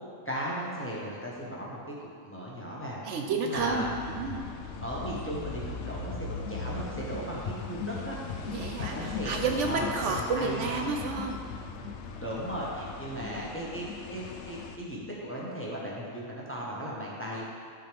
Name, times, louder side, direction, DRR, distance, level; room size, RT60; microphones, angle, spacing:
voice 1, 0.2-1.9 2.2-3.0 3.4-3.9 4.8-8.1 8.8-10.9 12.2-17.5, equal, 10° left, -6 dB, 1.2 m, -36 dB
voice 2, 3.0-4.5 8.5-11.4, right 4 dB, 70° right, 3 dB, 0.9 m, -31 dB
sound 1, 3.5-14.8, left 5 dB, 70° left, 0.8 m, -39 dB
sound 2, 11.5-13.7, left 2 dB, 90° left, 1.1 m, -51 dB
11.5 x 5.0 x 3.4 m, 2.3 s
omnidirectional pair, 1.3 m